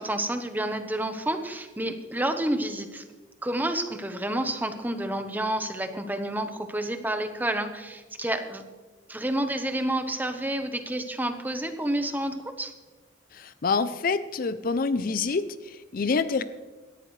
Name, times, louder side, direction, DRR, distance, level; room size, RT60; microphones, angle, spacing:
voice 1, 0.0-3.0 3.4-8.6 9.1-12.7, right 1 dB, 10° right, 7 dB, 1.0 m, -29 dB
voice 2, 13.3-16.4, left 4 dB, 45° left, 13 dB, 0.5 m, -27 dB
18.0 x 13.5 x 3.2 m, 1.3 s
head